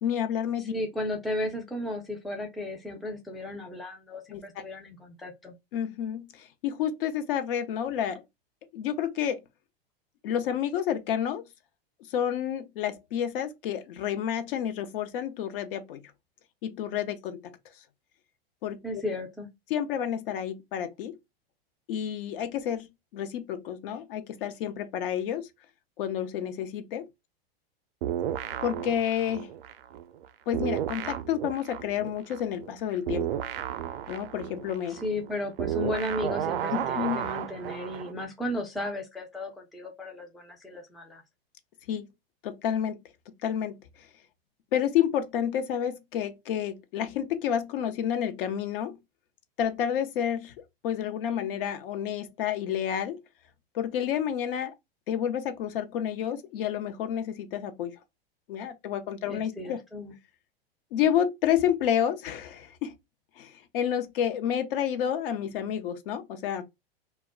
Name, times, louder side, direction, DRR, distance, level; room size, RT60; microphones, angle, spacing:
voice 1, 0.0-0.7 4.3-4.6 5.7-8.2 8.7-9.4 10.2-11.4 12.1-16.0 16.6-17.5 18.6-19.0 19.7-21.2 21.9-22.9 23.1-25.5 26.0-27.1 28.6-29.5 30.5-33.3 34.1-35.0 36.7-37.2 41.9-42.1 42.4-43.0 43.4-43.8 44.7-49.0 49.6-50.5 50.8-53.2 53.7-54.7 55.1-58.0 58.5-59.8 60.9-62.9 63.4-66.6, left 9 dB, 60° left, 0.6 m, -30 dB
voice 2, 0.6-5.5 18.8-19.5 34.9-41.2 59.3-60.1, left 1 dB, ahead, 0.3 m, -34 dB
sound 1, 28.0-30.3 30.5-38.1, right 11 dB, 70° right, 0.4 m, -33 dB
2.2 x 2.1 x 3.4 m
hypercardioid pair, 110°, 30 cm